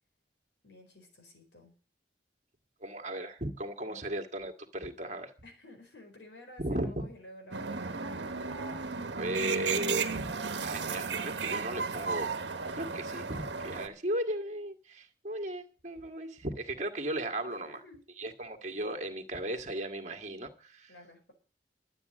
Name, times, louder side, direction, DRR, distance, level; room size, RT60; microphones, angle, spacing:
voice 1, 0.6-1.8 3.9-4.0 5.4-8.0 17.5-18.0 20.9-21.3, left 1 dB, 85° left, 4.5 m, -52 dB
voice 2, 2.8-5.3 6.6-7.1 9.2-10.3 10.6-12.4 12.8-17.8 18.2-20.9, right 1 dB, 45° right, 1.9 m, -36 dB
sound 1, 7.5-13.9, right 5 dB, 80° right, 1.3 m, -34 dB
12.0 x 8.7 x 7.6 m
head